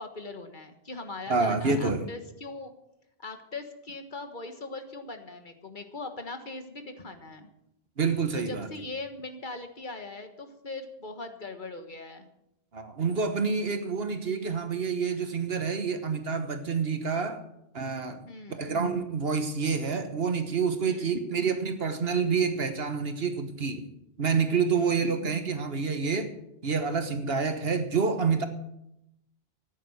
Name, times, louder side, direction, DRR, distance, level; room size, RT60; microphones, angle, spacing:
voice 1, 0.0-2.7 3.2-7.5 8.3-12.3 18.3-18.7 20.9-21.2 24.7-25.0, left 3 dB, 50° left, 1.6 m, -40 dB
voice 2, 1.3-2.1 8.0-8.7 12.7-17.4 17.7-23.8 24.2-26.3 26.6-28.5, right 5 dB, 75° right, 1.5 m, -28 dB
14.0 x 10.0 x 6.4 m
omnidirectional pair, 1.0 m